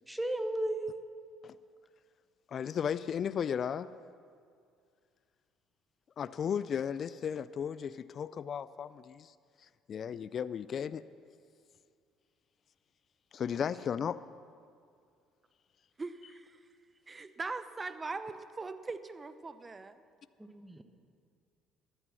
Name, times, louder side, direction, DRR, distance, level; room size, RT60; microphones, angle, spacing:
voice 1, 0.1-1.0 20.4-20.8, right 1 dB, 5° right, 1.2 m, -34 dB
voice 2, 2.5-3.9 6.2-9.3 9.9-11.0 13.3-14.3, left 8 dB, 50° left, 0.4 m, -35 dB
voice 3, 16.0-16.6 17.1-20.0, right 3 dB, 25° right, 0.8 m, -41 dB
14.0 x 11.0 x 6.3 m
supercardioid pair, 80°, 0 cm